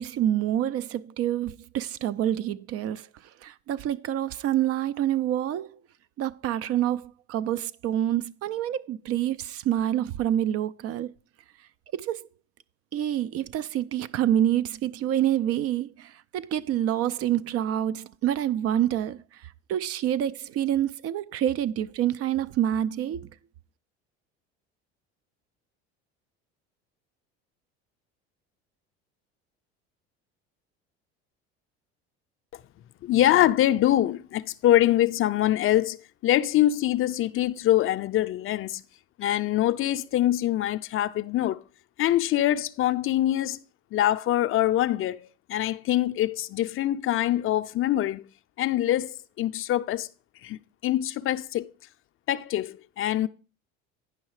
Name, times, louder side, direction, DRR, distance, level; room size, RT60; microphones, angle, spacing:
voice 1, 0.0-3.1 3.4-5.8 6.2-11.1 11.9-12.3 12.9-23.3, right 11 dB, 50° right, 0.5 m, -27 dB
voice 2, 33.0-36.0 36.2-38.8 39.2-41.6 42.0-43.6 43.9-48.2 48.6-50.1 50.4-51.7 52.3-53.3, left 13 dB, 40° left, 0.5 m, -24 dB
9.7 x 5.5 x 4.7 m
hypercardioid pair, 80°, 31 cm